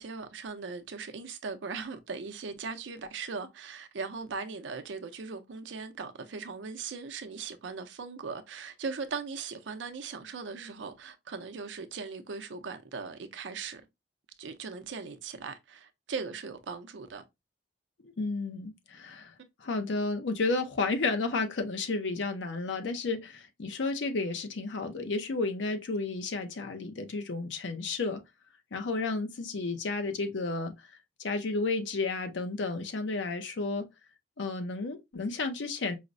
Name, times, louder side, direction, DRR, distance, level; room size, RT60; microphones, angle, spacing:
voice 1, 0.0-13.8 14.4-17.2 19.4-19.5, right 5 dB, 80° right, 0.5 m, -39 dB
voice 2, 18.0-19.3 19.6-28.2 28.7-30.7 31.2-33.8 34.4-36.0, left 3 dB, 80° left, 0.6 m, -32 dB
4.8 x 2.0 x 2.5 m
head